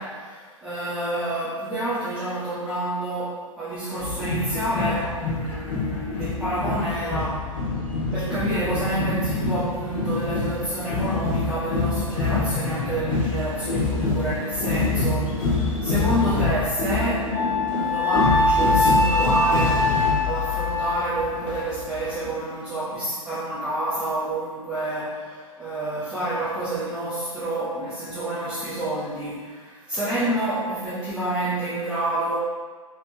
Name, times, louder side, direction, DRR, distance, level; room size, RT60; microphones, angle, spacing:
voice 1, 0.0-7.8 8.1-17.4 17.7-19.9 20.2-32.4, right 1 dB, 5° right, -13 dB, 0.5 m, -28 dB
sound 1, 4.0-22.3, left 3 dB, 40° left, 1.1 m, -26 dB
Wind instrument woodwind instrument, 17.3-21.6, left 2 dB, 80° left, 1.0 m, -23 dB
3.1 x 2.9 x 2.3 m, 1.5 s
figure-of-eight pair, 115°, 18 cm